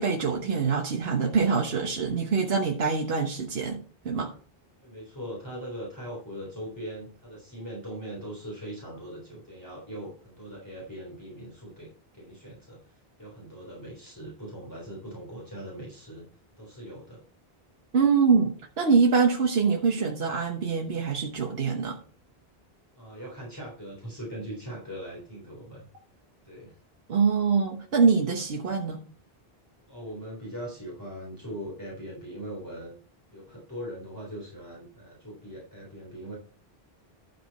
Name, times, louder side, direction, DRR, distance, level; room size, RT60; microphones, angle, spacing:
voice 1, 0.0-4.3 17.9-22.0 27.1-29.0, right 5 dB, 75° right, 1.4 m, -24 dB
voice 2, 4.8-16.2 16.6-17.2 22.9-25.9 26.4-26.8 29.9-32.9 33.3-36.3, equal, 20° left, 3.7 m, -40 dB
12.0 x 6.3 x 4.2 m
omnidirectional pair, 1.0 m